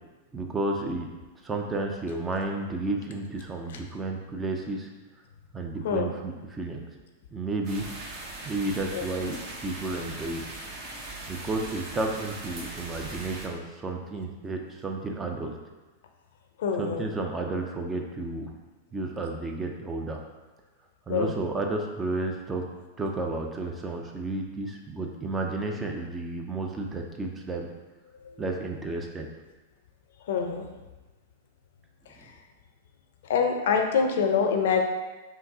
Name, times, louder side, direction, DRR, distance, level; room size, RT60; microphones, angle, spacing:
voice 1, 0.3-1.1 1.4-4.9 5.5-6.8 7.3-8.0 8.4-10.4 11.3-15.6 16.8-18.6 18.9-20.2 21.1-22.7 23.0-27.7 28.4-29.3 32.2-32.3, right 2 dB, 15° right, 2 dB, 0.5 m, -32 dB
sound 1, 7.6-13.5, right 2 dB, 45° right, 1.0 m, -40 dB
voice 2, 16.6-17.1 21.1-21.3 28.2-28.4 30.3-30.7 33.3-34.8, left 6 dB, 70° left, 4 dB, 0.5 m, -25 dB
5.6 x 2.0 x 2.7 m, 1.2 s
hypercardioid pair, 125°, 0 cm